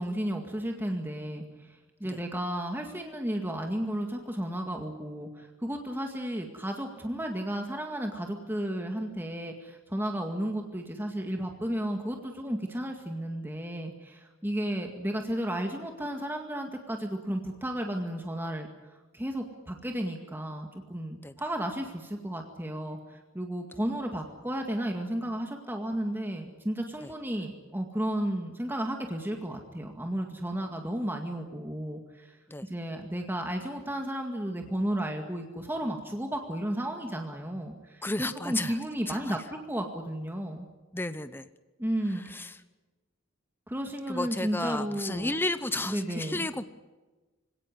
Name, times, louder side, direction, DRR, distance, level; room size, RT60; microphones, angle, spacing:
voice 1, 0.0-18.7 19.1-40.7 41.8-42.4 43.7-45.4 45.8-46.5, right 1 dB, 10° right, 3 dB, 2.0 m, -33 dB
voice 2, 38.0-38.8 39.1-39.4 40.9-41.5 42.3-42.6 44.1-46.6, left 2 dB, 10° left, 12 dB, 0.8 m, -32 dB
25.5 x 17.5 x 9.6 m, 1.2 s
head